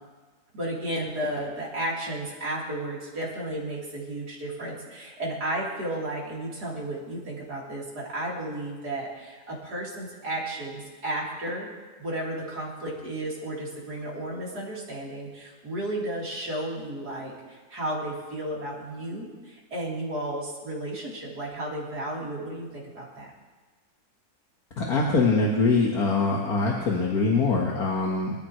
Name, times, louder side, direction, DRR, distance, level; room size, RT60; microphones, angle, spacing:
voice 1, 0.5-11.7 12.0-23.3, right 1 dB, 80° right, -5 dB, 4.3 m, -33 dB
voice 2, 24.8-28.3, left 3 dB, 65° left, -2 dB, 2.1 m, -23 dB
26.5 x 14.0 x 3.2 m, 1.4 s
omnidirectional pair, 1.7 m